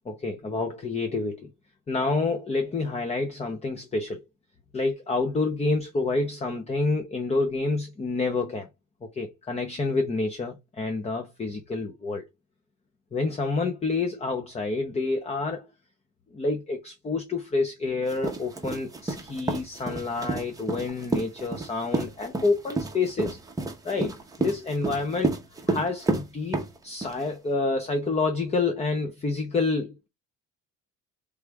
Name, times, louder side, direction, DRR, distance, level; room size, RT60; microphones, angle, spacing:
voice 1, 0.1-1.5 1.9-4.2 4.7-8.7 9.1-12.2 13.1-15.7 16.3-23.4 23.8-25.3 25.7-29.9, left 3 dB, 20° left, 0.7 m, -28 dB
sound 1, 18.1-27.2, right 3 dB, 10° right, 0.8 m, -30 dB
3.5 x 3.1 x 4.7 m
cardioid pair, 145°, 34 cm